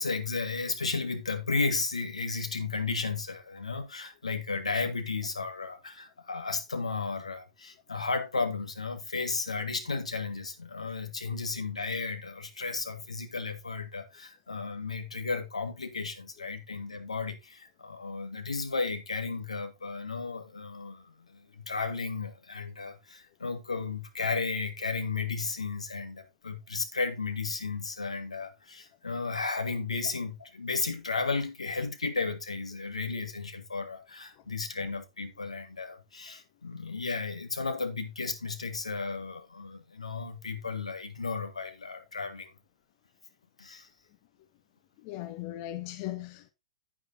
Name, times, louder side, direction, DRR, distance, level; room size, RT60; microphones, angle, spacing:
voice 1, 0.0-42.5 43.6-43.9, left 4 dB, 80° left, 1.5 m, -34 dB
voice 2, 45.0-46.5, left 15 dB, 40° left, 0.8 m, -38 dB
9.8 x 8.9 x 2.7 m
figure-of-eight pair, 105°, 3 cm